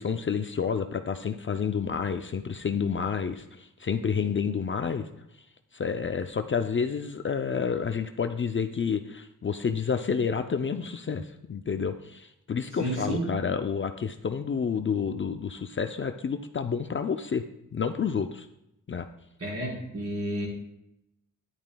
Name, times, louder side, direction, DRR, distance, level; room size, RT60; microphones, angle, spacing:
voice 1, 0.0-5.1 5.7-17.4 17.7-18.5 18.9-19.1, left 6 dB, 40° left, 7 dB, 0.5 m, -29 dB
voice 2, 12.8-13.3 19.4-20.5, right 1 dB, 50° right, -4 dB, 4.3 m, -31 dB
13.5 x 11.0 x 2.3 m, 0.82 s
wide cardioid pair, 140°, 32 cm